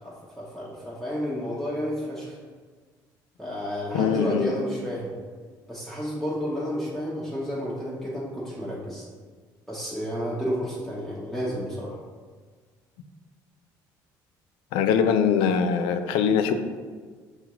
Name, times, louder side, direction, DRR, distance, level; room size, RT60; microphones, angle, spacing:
voice 1, 0.0-2.3 3.4-5.1 5.7-9.1 9.7-12.0, equal, ahead, -7 dB, 0.7 m, -31 dB
voice 2, 3.9-4.5 14.7-16.5, left 7 dB, 80° left, 8 dB, 0.3 m, -22 dB
5.7 x 2.4 x 2.9 m, 1.5 s
cardioid pair, 105°, 8 cm